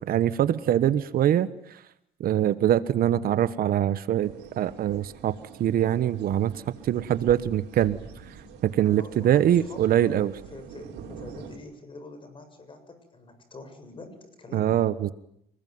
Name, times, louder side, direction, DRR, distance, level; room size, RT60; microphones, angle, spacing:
voice 1, 0.0-1.8 2.2-5.3 5.6-8.0 8.6-10.4 14.5-15.1, right 11 dB, 60° right, 15 dB, 1.2 m, -23 dB
sound 1, 4.2-11.6, right 6 dB, 85° right, 5.4 m, -45 dB
voice 2, 9.0-10.3 10.5-14.8, left 3 dB, 30° left, 9 dB, 7.5 m, -45 dB
29.5 x 20.5 x 9.5 m, 0.76 s
cardioid pair, 110°, 17 cm